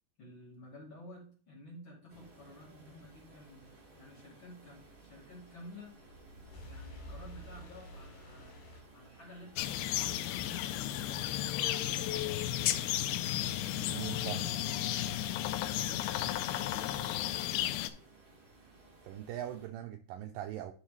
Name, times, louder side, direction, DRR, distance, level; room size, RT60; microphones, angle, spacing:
voice 1, 0.2-6.0 6.6-8.6 8.9-12.8 13.4-16.1 16.6-17.1, left 1 dB, 35° left, -5 dB, 2.7 m, -53 dB
sound 1, 2.1-19.7, right 2 dB, 25° right, 1.5 m, -59 dB
sound 2, 5.8-9.6, equal, 70° left, 3.5 m, -50 dB
sound 3, 9.6-17.9, left 12 dB, 85° left, 2.5 m, -33 dB
voice 2, 13.9-14.5 19.0-20.7, right 11 dB, 80° right, 6 dB, 2.0 m, -41 dB
10.5 x 4.8 x 3.2 m, 0.42 s
omnidirectional pair, 4.3 m